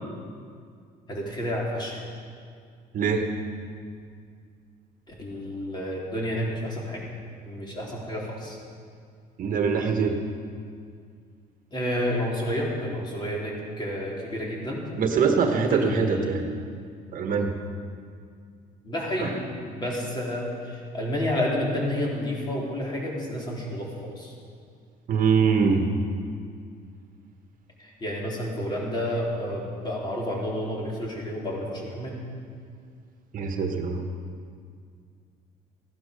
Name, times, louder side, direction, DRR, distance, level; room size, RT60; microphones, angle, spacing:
voice 1, 1.1-2.0 5.2-7.1 7.4-8.6 11.7-14.8 15.7-16.3 18.8-24.3 27.8-32.2, left 1 dB, 25° left, -3 dB, 3.7 m, -30 dB
voice 2, 2.9-3.3 9.4-10.2 15.0-16.4 17.1-17.6 19.2-19.3 25.1-25.8 33.3-34.1, right 5 dB, 55° right, 4 dB, 1.3 m, -23 dB
15.5 x 11.5 x 5.3 m, 2.2 s
cardioid pair, 110°, 17 cm